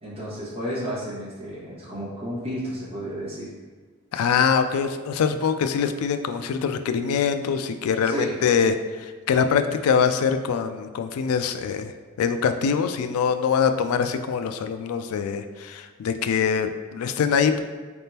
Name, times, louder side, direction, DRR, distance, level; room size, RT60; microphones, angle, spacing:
voice 1, 0.0-3.5 8.0-8.4, equal, 30° right, -9 dB, 1.4 m, -32 dB
voice 2, 4.1-11.9 12.2-17.6, left 6 dB, 85° left, 8 dB, 0.3 m, -23 dB
4.0 x 3.6 x 2.8 m, 1.5 s
head